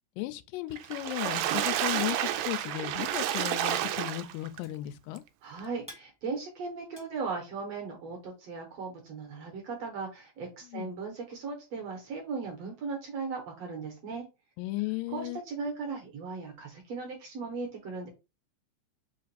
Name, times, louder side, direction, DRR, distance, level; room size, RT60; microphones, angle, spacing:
voice 1, 0.2-5.2 10.7-11.0 14.6-15.4, left 17 dB, 90° left, 2.2 m, -35 dB
Water / Splash splatter, 0.8-4.6 5.2-5.3 5.6-5.7, right 11 dB, 85° right, 2.1 m, -30 dB
sound 1, 4.6-8.0, equal, 5° right, 0.7 m, -55 dB
voice 2, 5.4-14.3 15.1-18.1, right 4 dB, 60° right, 1.9 m, -37 dB
5.2 x 2.5 x 4.0 m
omnidirectional pair, 3.9 m